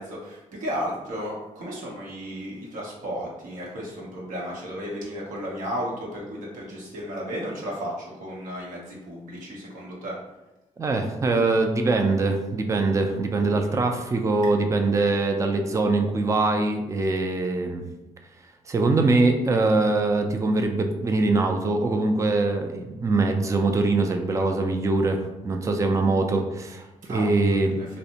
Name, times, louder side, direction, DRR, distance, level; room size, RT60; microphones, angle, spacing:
voice 1, 0.0-10.1 27.1-27.9, equal, 85° right, -4 dB, 0.8 m, -34 dB
voice 2, 10.8-17.8 18.7-27.8, right 3 dB, 25° right, 5 dB, 0.3 m, -23 dB
2.5 x 2.0 x 2.8 m, 1.0 s
cardioid pair, 80°, 13 cm